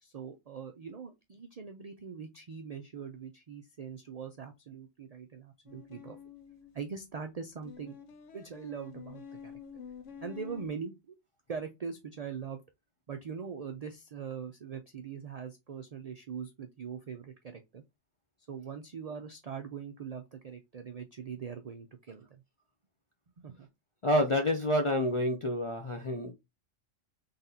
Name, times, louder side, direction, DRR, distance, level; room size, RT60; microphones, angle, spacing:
voice 1, 0.0-6.2 6.7-8.0 8.3-9.5 10.2-11.1 11.5-12.6 13.1-17.8 18.5-22.4 23.4-23.7, right 6 dB, 90° right, 0.3 m, -42 dB
sound 1, 5.7-6.7 7.6-10.7, left 7 dB, 75° left, 1.0 m, -48 dB
voice 2, 24.0-26.3, left 1 dB, 50° left, 0.3 m, -28 dB
3.9 x 3.4 x 2.7 m
omnidirectional pair, 1.3 m